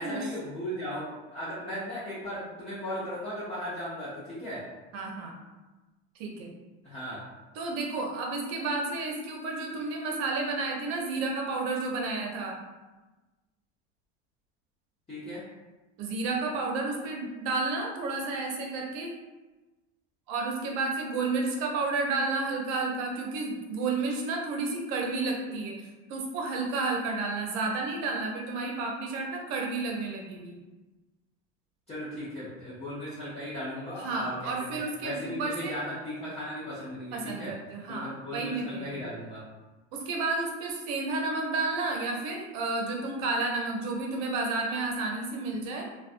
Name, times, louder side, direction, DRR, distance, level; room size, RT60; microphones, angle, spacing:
voice 1, 0.0-4.6 6.8-7.2 15.1-15.4 31.9-37.5 37.9-39.4, equal, 20° left, -11 dB, 0.7 m, -37 dB
voice 2, 4.9-5.3 6.2-6.5 7.5-12.6 16.0-19.1 20.3-30.5 34.0-35.7 37.1-39.0 39.9-45.9, right 3 dB, 55° right, 0 dB, 0.7 m, -31 dB
2.4 x 2.2 x 2.5 m, 1.2 s
supercardioid pair, 120°, 33 cm